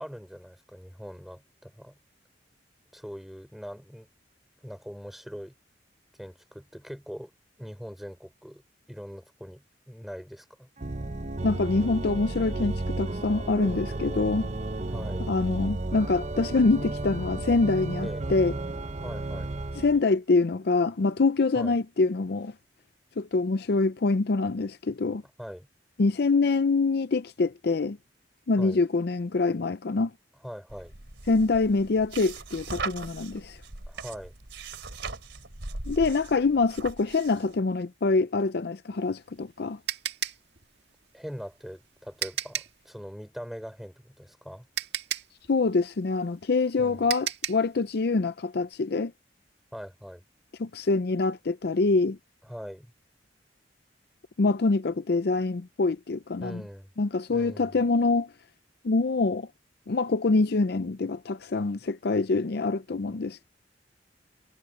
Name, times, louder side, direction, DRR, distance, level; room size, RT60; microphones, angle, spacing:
voice 1, 0.0-2.0 2.9-4.1 4.6-5.6 6.2-7.3 7.6-8.6 8.9-10.7 14.9-15.3 18.0-18.3 19.0-19.5 21.5-21.8 25.4-25.7 28.6-28.8 30.4-30.9 33.9-34.4 41.1-44.7 46.8-47.1 49.7-50.2 52.5-52.9 56.4-56.9 57.3-57.8, equal, ahead, 5.2 m, -42 dB
Organ, 10.8-20.0, right 2 dB, 40° right, 0.8 m, -33 dB
voice 2, 11.4-14.5 15.3-18.5 19.8-22.5 23.2-25.2 26.0-28.0 28.5-30.1 31.3-33.6 35.9-39.8 45.5-49.1 50.6-52.2 54.4-56.6 57.0-58.3 58.8-59.5 59.9-63.4, left 3 dB, 60° left, 0.5 m, -25 dB
sound 1, 30.7-37.5, right 3 dB, 80° right, 3.2 m, -39 dB
sound 2, 39.0-42.8 44.2-44.3 44.8-47.7, right 10 dB, 65° right, 1.9 m, -34 dB
head